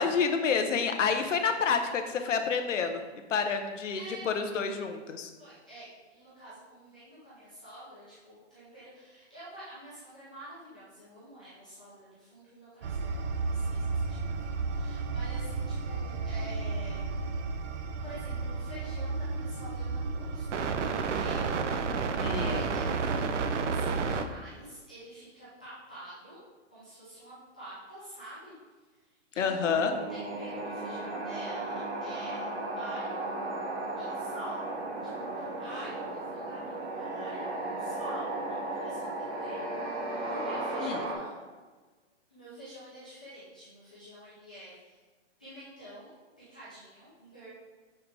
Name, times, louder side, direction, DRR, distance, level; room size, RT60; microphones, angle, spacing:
voice 1, 0.0-3.0 3.3-5.3 22.2-22.6 29.4-29.9 40.8-41.0, left 6 dB, 85° left, 6 dB, 1.0 m, -28 dB
voice 2, 3.9-4.6 5.4-17.3 18.0-26.4 26.7-28.5 29.0-32.5 32.8-33.3 34.0-34.6 35.2-41.4 42.3-45.0 45.4-47.5, right 1 dB, 5° left, -13 dB, 0.4 m, -47 dB
sound 1, 12.8-24.2, right 4 dB, 80° right, 0.8 m, -32 dB
sound 2, 29.6-41.1, right 2 dB, 60° right, 1.8 m, -35 dB
6.7 x 5.7 x 3.4 m, 1.3 s
hypercardioid pair, 165°, 36 cm